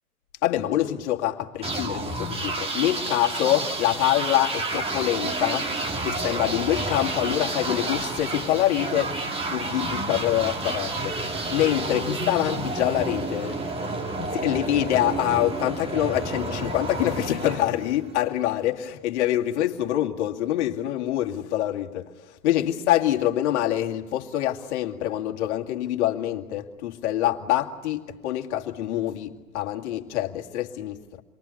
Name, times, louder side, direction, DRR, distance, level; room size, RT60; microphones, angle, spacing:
voice 1, 0.4-5.8 6.0-9.2 9.5-13.6 14.3-31.2, left 13 dB, 45° left, 2.3 m, -25 dB
sound 1, 1.6-18.3, right 2 dB, 10° right, 2.0 m, -30 dB
29.0 x 23.5 x 8.5 m
figure-of-eight pair, 110°, 46 cm